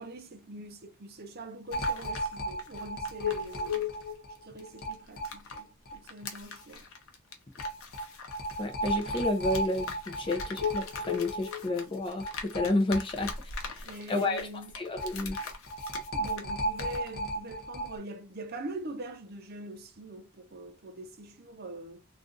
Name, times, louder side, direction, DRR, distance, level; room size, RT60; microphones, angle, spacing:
voice 1, 0.0-3.9 4.4-6.9 13.8-14.7 16.1-22.1, right 1 dB, 45° right, 0.6 m, -43 dB
sound 1, 1.5-5.6 5.9-16.5 16.8-17.1, left 4 dB, 75° left, 0.8 m, -43 dB
sound 2, 1.7-6.0 6.2-6.3 6.6-6.7 7.6-13.3 13.6-13.7 15.0-17.9, left 1 dB, 45° left, 0.9 m, -34 dB
voice 2, 8.6-13.4 13.6-14.5 14.8-15.4, left 2 dB, 25° left, 0.5 m, -31 dB
2.5 x 2.4 x 3.8 m
head